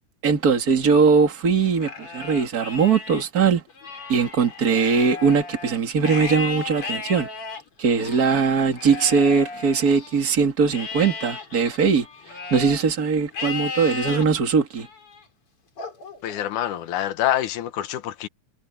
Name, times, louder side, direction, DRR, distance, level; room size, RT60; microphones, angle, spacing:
voice 1, 0.2-3.6 4.1-7.3 7.8-12.1 12.5-14.9, right 5 dB, 30° right, 2.6 m, -20 dB
Livestock farm animals working animals, 1.7-3.2 3.7-10.2 10.7-12.8 13.3-14.2 14.8-15.2 15.8-16.9, left 4 dB, 45° left, 4.2 m, -35 dB
voice 2, 16.2-18.3, left 12 dB, 85° left, 2.6 m, -26 dB
omnidirectional pair, 3.4 m